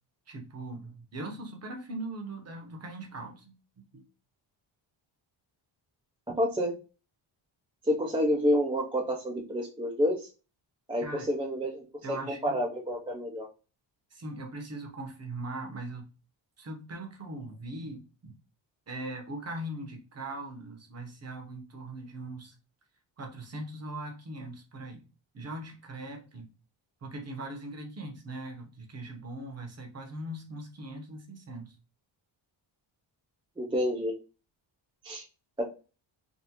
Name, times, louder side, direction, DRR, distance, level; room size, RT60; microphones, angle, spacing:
voice 1, 0.3-3.5 3.9-4.0 11.0-11.3 12.0-12.6 14.1-16.1 16.6-18.1 18.9-22.6 23.2-25.0 25.3-26.5 27.0-31.8, right 2 dB, 30° right, 3 dB, 0.8 m, -40 dB
voice 2, 6.4-6.8 7.8-10.3 10.9-13.5 33.6-34.1 35.0-35.2 35.6-35.7, equal, 10° right, -1 dB, 0.4 m, -29 dB
3.5 x 2.4 x 2.8 m, 0.33 s
wide cardioid pair, 155°, 47 cm